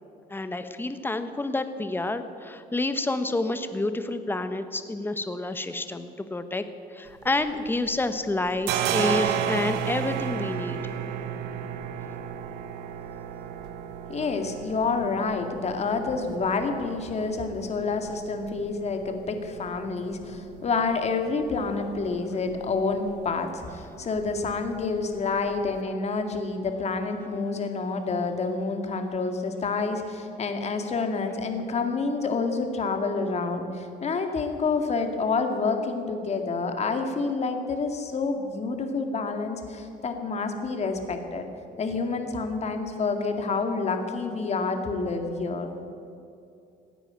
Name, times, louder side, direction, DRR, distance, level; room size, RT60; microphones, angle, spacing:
voice 1, 0.3-6.6 6.9-10.8, left 2 dB, 10° left, 10 dB, 1.2 m, -29 dB
sound 1, 7.1-8.0 8.3-25.8, right 9 dB, 85° right, 1.3 m, -34 dB
voice 2, 14.1-41.5 41.8-45.7, left 4 dB, 40° left, 5 dB, 2.2 m, -28 dB
16.5 x 9.9 x 8.8 m, 2.6 s
cardioid pair, 110°, 17 cm